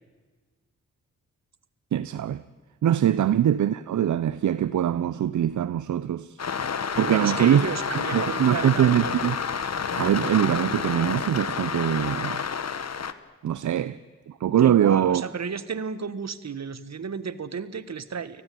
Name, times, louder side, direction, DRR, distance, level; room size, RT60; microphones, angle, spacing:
voice 1, 1.9-2.4 2.8-6.4 7.0-7.7 8.1-9.4 10.0-12.4 13.4-14.0 14.3-15.2, right 10 dB, 75° right, 0.7 m, -23 dB
sound 1, 6.4-13.1, left 6 dB, 60° left, 1.3 m, -29 dB
voice 2, 7.0-9.2 14.6-18.4, right 6 dB, 60° right, 1.5 m, -32 dB
29.5 x 19.0 x 9.1 m
cardioid pair, 40°, 30 cm